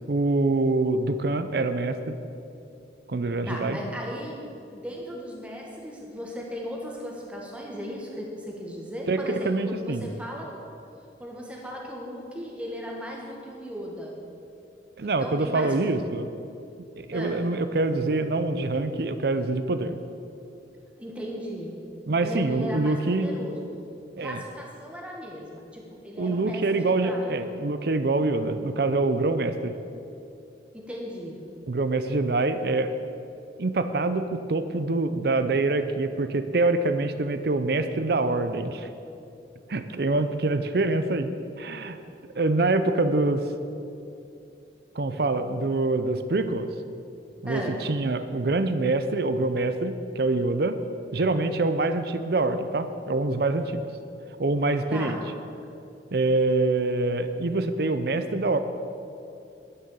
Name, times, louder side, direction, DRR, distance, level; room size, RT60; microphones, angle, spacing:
voice 1, 0.1-2.2 3.1-3.8 9.1-10.1 15.0-16.3 17.0-20.0 22.1-23.3 24.2-24.4 26.2-29.7 31.7-32.9 33.6-38.9 39.7-41.3 41.6-42.0 42.4-43.4 45.0-46.7 47.4-50.8 51.1-53.9 54.4-55.2 56.1-58.6, right 2 dB, 55° right, 10 dB, 0.6 m, -25 dB
voice 2, 3.5-4.4 4.7-10.5 11.2-14.1 15.2-15.9 17.1-17.4 21.0-21.8 22.2-23.6 24.2-27.3 30.7-31.4 47.5-47.8 54.9-55.2, equal, 5° right, -2 dB, 1.6 m, -36 dB
11.0 x 6.9 x 7.2 m, 2.7 s
head